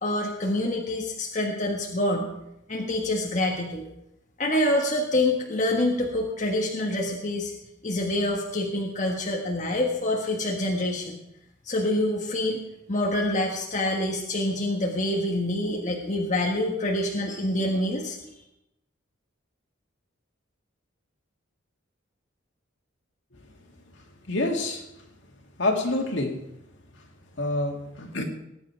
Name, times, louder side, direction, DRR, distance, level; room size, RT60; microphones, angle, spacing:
voice 1, 0.0-2.3 2.7-3.9 4.4-7.5 7.8-11.2 11.6-12.6 12.9-18.3, left 1 dB, 35° left, -1 dB, 1.5 m, -26 dB
voice 2, 24.3-24.9 25.6-26.4 27.4-28.2, left 2 dB, 60° left, 2 dB, 2.3 m, -27 dB
19.5 x 9.7 x 4.6 m, 0.87 s
head